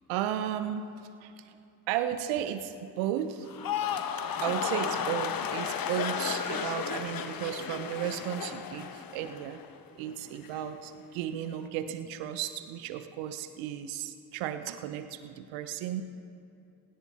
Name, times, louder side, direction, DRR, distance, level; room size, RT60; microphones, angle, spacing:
voice 1, 0.1-0.9 1.2-1.5 1.9-3.5 4.4-9.6 9.9-16.0, right 11 dB, 75° right, 10 dB, 0.8 m, -34 dB
sound 1, 3.4-9.8 10.1-10.6, left 8 dB, 50° left, 1.1 m, -34 dB
17.5 x 16.5 x 4.2 m, 2.7 s
hypercardioid pair, 40°, 46 cm